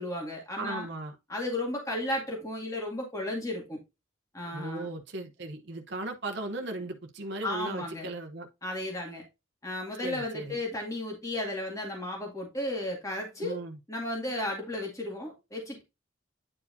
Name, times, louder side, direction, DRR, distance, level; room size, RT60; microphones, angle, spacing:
voice 1, 0.0-0.9 1.3-3.8 4.3-4.9 7.4-8.1 8.6-9.2 9.6-13.6 13.9-15.8, left 1 dB, 15° left, 2.1 m, -34 dB
voice 2, 0.6-1.2 4.5-8.5 10.0-10.6 13.4-13.8, right 2 dB, 55° right, 0.9 m, -37 dB
9.8 x 4.7 x 2.7 m
head